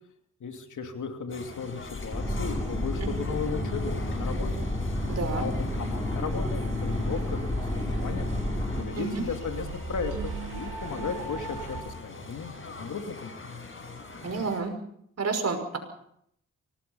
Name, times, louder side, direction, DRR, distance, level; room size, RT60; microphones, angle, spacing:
voice 1, 0.4-4.5 5.4-8.3 8.7-13.3, left 5 dB, 75° left, 5 dB, 2.8 m, -35 dB
sound 1, 1.3-14.6, left 3 dB, 40° left, 6.1 m, -43 dB
sound 2, 2.1-8.8, left 1 dB, 15° left, 4.3 m, -30 dB
sound 3, 3.3-11.8, right 4 dB, 80° right, 3.8 m, -40 dB
voice 2, 5.1-5.5 9.0-9.2 14.2-14.8 15.2-15.8, right 4 dB, 55° right, 6 dB, 5.6 m, -30 dB
25.0 x 19.0 x 5.6 m, 0.71 s
cardioid pair, 75°, 30 cm